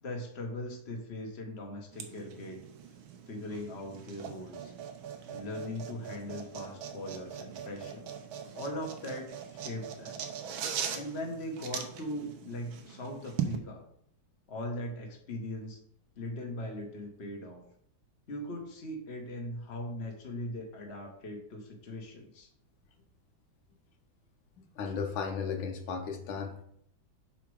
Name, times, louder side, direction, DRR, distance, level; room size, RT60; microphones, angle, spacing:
voice 1, 0.0-2.6 3.3-4.7 5.3-8.1 8.5-10.2 10.9-13.8 14.5-15.8 16.2-17.6 18.3-22.5, left 1 dB, 35° left, 1 dB, 1.4 m, -40 dB
sound 1, 1.9-13.6, right 8 dB, 85° right, 1.7 m, -40 dB
voice 2, 24.8-26.6, left 6 dB, 80° left, 4 dB, 1.7 m, -35 dB
7.4 x 5.0 x 4.8 m, 0.68 s
omnidirectional pair, 2.2 m